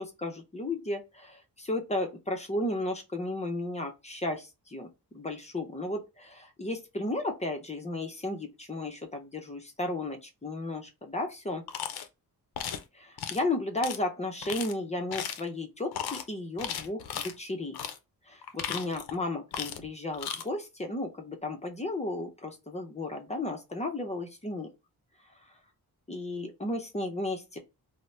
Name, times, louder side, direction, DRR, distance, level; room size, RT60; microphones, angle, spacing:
voice 1, 0.0-4.9 5.1-11.6 12.9-17.8 18.3-24.7 26.1-27.6, left 2 dB, 20° left, 0.5 m, -34 dB
sound 1, 11.7-12.1 12.6-12.8 13.2-13.4 13.8-14.0 14.4-14.7 15.1-15.5 15.9-16.2 16.6-17.3 17.7-18.0 18.4-19.2 19.5-19.9 20.1-20.4, left 8 dB, 70° left, 0.5 m, -36 dB
2.7 x 2.0 x 3.2 m
wide cardioid pair, 115°, 39 cm